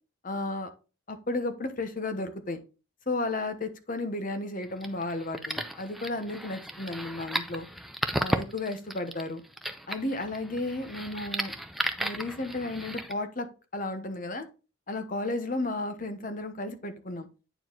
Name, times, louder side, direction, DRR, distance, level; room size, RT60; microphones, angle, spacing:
voice 1, 0.2-0.7 1.1-2.6 3.1-7.7 8.2-9.4 9.9-11.5 12.0-13.5 13.7-14.5 14.9-17.3, left 2 dB, 40° left, 1.0 m, -33 dB
sound 1, 4.6-13.1, equal, ahead, 0.5 m, -34 dB
9.1 x 4.6 x 3.8 m
head